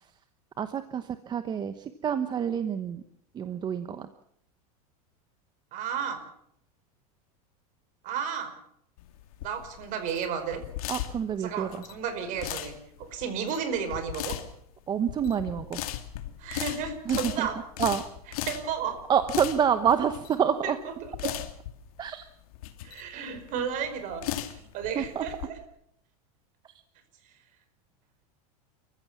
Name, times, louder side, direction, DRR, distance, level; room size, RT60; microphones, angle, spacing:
voice 1, 0.6-3.0 3.3-4.1 10.9-11.8 14.9-15.8 17.1-17.5 17.8-18.0 19.1-20.8 22.0-22.2 23.2-23.3 24.9-25.3, right 8 dB, 20° right, 11 dB, 1.0 m, -27 dB
voice 2, 5.7-6.2 8.0-8.5 9.4-10.6 11.4-12.7 13.0-14.4 16.4-17.6 18.5-19.0 20.6-20.7 21.0-21.3 22.8-25.6, right 7 dB, 40° right, 9 dB, 5.0 m, -33 dB
sound 1, 9.0-25.5, left 13 dB, 70° left, 2.7 m, -37 dB
29.5 x 15.0 x 7.3 m, 0.72 s
supercardioid pair, 145°, 19 cm